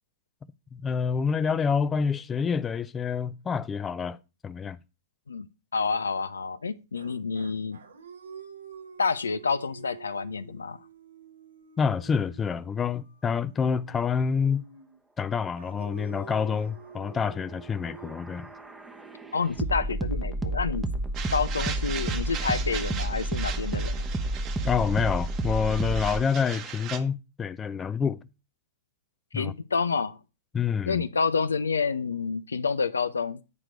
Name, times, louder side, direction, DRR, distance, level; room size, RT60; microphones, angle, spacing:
voice 1, 0.7-4.2 4.4-4.8 11.8-14.7 15.2-18.5 24.6-28.2 29.3-29.5 30.5-31.0, left 6 dB, 15° left, 0.5 m, -27 dB
voice 2, 5.7-7.8 9.0-10.8 19.3-20.9 21.3-24.0 29.3-30.2 30.9-33.4, left 5 dB, 80° left, 0.6 m, -28 dB
sound 1, 6.9-15.0 15.6-23.6, right 6 dB, 75° right, 1.3 m, -49 dB
sound 2, 17.5-26.2, right 1 dB, 5° right, 0.9 m, -31 dB
sound 3, 21.1-27.0, right 8 dB, 35° right, 1.2 m, -39 dB
9.7 x 4.4 x 5.1 m
figure-of-eight pair, 110°, 0 cm